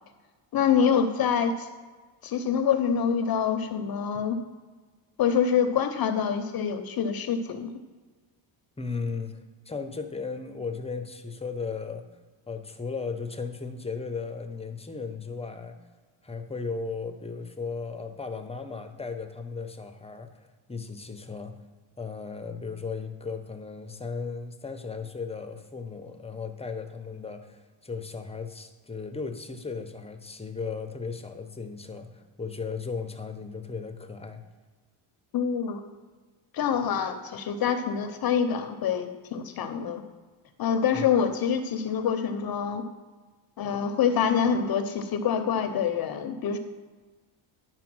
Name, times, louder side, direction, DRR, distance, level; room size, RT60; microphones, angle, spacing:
voice 1, 0.5-1.7 2.2-4.4 5.2-7.7 35.3-35.8 36.5-40.0 40.6-42.8 43.6-46.6, left 7 dB, 45° left, 8 dB, 0.7 m, -26 dB
voice 2, 8.8-12.1 12.5-15.8 16.2-21.6 22.0-34.4 40.9-41.1, left 4 dB, 10° left, 6 dB, 0.7 m, -36 dB
10.5 x 4.5 x 6.1 m, 1.4 s
cardioid pair, 115°, 50 cm